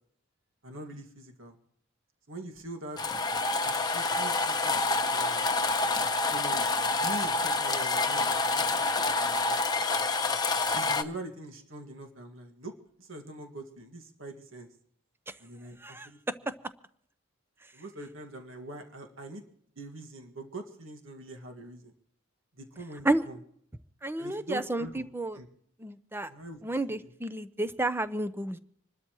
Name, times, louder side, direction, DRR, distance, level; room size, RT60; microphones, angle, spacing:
voice 1, 0.6-1.6 2.3-3.0 3.6-5.4 6.3-6.7 7.0-9.9 10.7-14.7 15.4-15.8 16.0-16.2 17.7-19.4 19.8-21.9 22.5-23.4 24.2-25.0 25.3-25.5 26.3-26.6 27.0-27.1, right 2 dB, 65° right, 4 dB, 1.9 m, -43 dB
sound 1, 3.0-11.0, left 3 dB, 20° left, 0.9 m, -27 dB
voice 2, 24.0-25.4 25.8-26.3 26.6-28.6, right 2 dB, 10° right, 13 dB, 0.6 m, -31 dB
26.5 x 13.0 x 3.0 m, 0.66 s
head